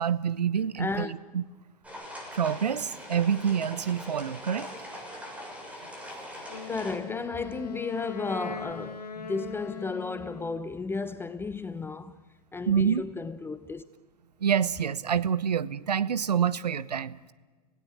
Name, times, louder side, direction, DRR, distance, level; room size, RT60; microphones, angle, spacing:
voice 1, 0.0-1.4 2.3-4.7 12.7-13.0 14.4-17.3, right 8 dB, 85° right, 1.0 m, -27 dB
voice 2, 0.8-1.1 6.7-12.2 12.5-13.8, left 4 dB, 10° left, 0.8 m, -33 dB
sound 1, 1.8-7.0, equal, 5° right, 7.4 m, -42 dB
Wind instrument woodwind instrument, 6.5-10.7, left 6 dB, 85° left, 1.9 m, -40 dB
26.0 x 17.5 x 8.6 m
hypercardioid pair, 100°, 20 cm